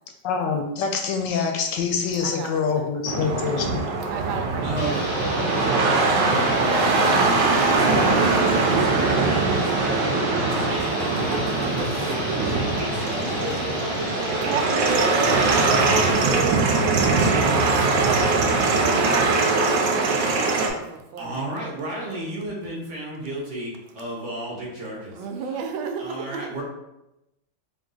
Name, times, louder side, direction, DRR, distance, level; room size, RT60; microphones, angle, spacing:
voice 1, 0.2-3.9, left 6 dB, 75° left, 3 dB, 1.1 m, -25 dB
voice 2, 2.2-2.9 4.1-4.7 14.5-21.4 25.1-26.5, right 6 dB, 90° right, 5 dB, 1.4 m, -33 dB
sound 1, 3.1-20.7, right 3 dB, 75° right, 1.2 m, -21 dB
voice 3, 4.6-5.6 6.3-14.6 21.2-25.6 26.0-26.6, right 1 dB, 50° right, -4 dB, 1.0 m, -34 dB
sound 2, 4.7-16.2, left 2 dB, 40° left, 0.9 m, -32 dB
3.9 x 2.6 x 3.8 m, 0.92 s
omnidirectional pair, 2.1 m